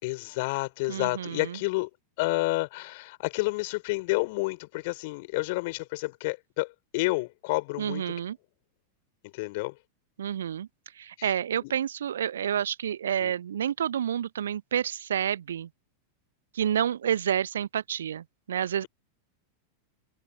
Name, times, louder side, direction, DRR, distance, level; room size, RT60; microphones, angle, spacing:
voice 1, 0.0-1.9 2.2-8.1 9.2-9.8 11.2-11.3 11.6-11.7 13.2-13.3, left 24 dB, 50° left, 6.7 m, -30 dB
voice 2, 0.9-1.5 7.8-8.4 10.2-10.7 11.0-15.7 16.6-18.8, right 9 dB, 65° right, 1.1 m, -29 dB
figure-of-eight pair, 90°, 0 cm